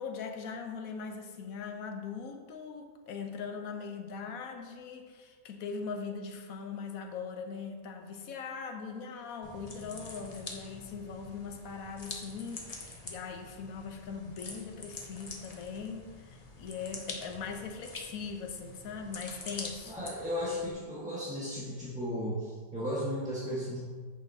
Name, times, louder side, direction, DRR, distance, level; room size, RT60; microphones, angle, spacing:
voice 1, 0.0-20.0, left 5 dB, 70° left, 4 dB, 1.2 m, -40 dB
sound 1, 9.4-20.7, left 3 dB, 35° left, 0.6 m, -46 dB
voice 2, 19.9-23.8, equal, 5° right, -9 dB, 1.3 m, -35 dB
8.9 x 6.5 x 2.8 m, 1.5 s
omnidirectional pair, 1.6 m